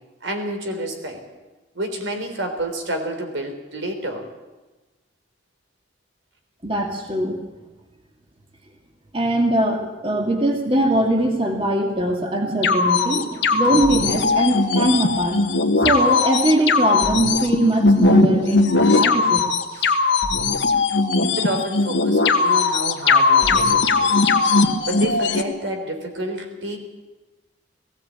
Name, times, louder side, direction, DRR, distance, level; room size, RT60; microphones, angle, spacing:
voice 1, 0.2-1.2 1.7-4.3 13.6-13.8 19.7-20.0 21.2-24.2 24.9-26.8, right 1 dB, 85° right, 5 dB, 3.8 m, -29 dB
voice 2, 6.6-7.4 9.1-15.4 15.8-19.4, right 1 dB, 30° right, 2 dB, 2.1 m, -21 dB
sound 1, 12.6-25.4, left 3 dB, 75° left, 1.5 m, -19 dB
19.0 x 16.0 x 8.7 m, 1.2 s
head